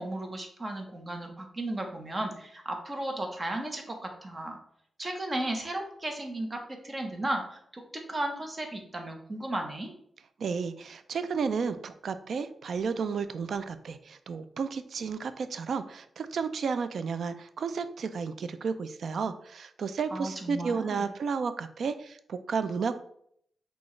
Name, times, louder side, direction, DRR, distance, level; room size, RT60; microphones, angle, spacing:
voice 1, 0.0-4.6 5.0-7.8 8.1-9.9 20.1-21.1, right 1 dB, 30° right, 3 dB, 0.9 m, -35 dB
voice 2, 10.4-23.0, right 5 dB, 70° right, 11 dB, 0.3 m, -32 dB
6.1 x 2.3 x 3.1 m, 0.69 s
cardioid pair, 95°, 0 cm